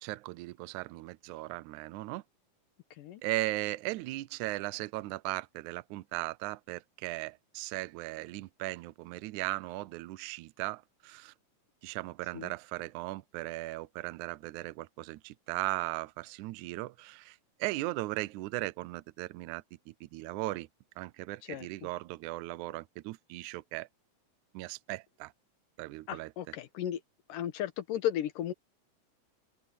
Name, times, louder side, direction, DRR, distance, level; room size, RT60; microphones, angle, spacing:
voice 1, 0.0-2.2 3.2-11.3 11.8-20.7 21.0-23.9 24.5-25.3 25.8-26.5, right 19 dB, 80° right, 1.9 m, -37 dB
voice 2, 26.1-27.0 27.3-28.5, left 11 dB, 85° left, 2.9 m, -34 dB
omnidirectional pair, 3.7 m